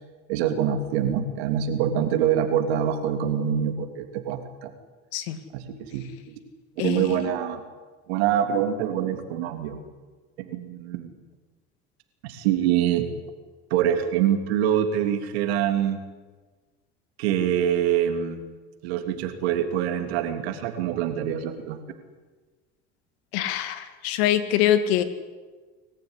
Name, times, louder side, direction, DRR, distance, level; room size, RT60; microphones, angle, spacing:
voice 1, 0.3-4.7 5.5-6.4 6.8-7.6 8.1-9.8 10.4-11.1 12.2-13.1 13.7-16.0 17.2-18.4 18.8-21.8, right 9 dB, 90° right, 6 dB, 3.1 m, -25 dB
voice 2, 6.8-7.2 23.3-25.0, left 11 dB, 85° left, 10 dB, 2.3 m, -24 dB
26.0 x 14.5 x 10.0 m, 1.3 s
supercardioid pair, 90°, 31 cm